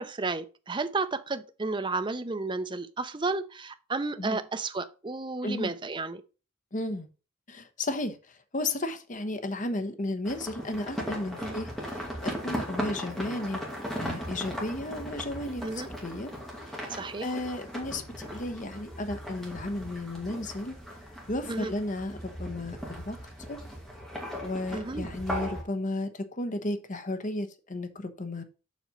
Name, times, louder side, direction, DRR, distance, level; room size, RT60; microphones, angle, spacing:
voice 1, 0.0-6.2 11.4-11.6 15.6-15.9 16.9-17.3 21.5-21.7 24.7-25.1, right 3 dB, 25° right, 0.6 m, -32 dB
voice 2, 6.7-7.1 7.5-8.2 8.5-13.6 14.0-16.3 16.8-20.7 21.3-23.2 23.5-23.6 24.4-28.4, left 1 dB, 40° left, 1.0 m, -34 dB
sound 1, 10.3-25.6, equal, ahead, 2.2 m, -38 dB
7.4 x 4.3 x 5.6 m
head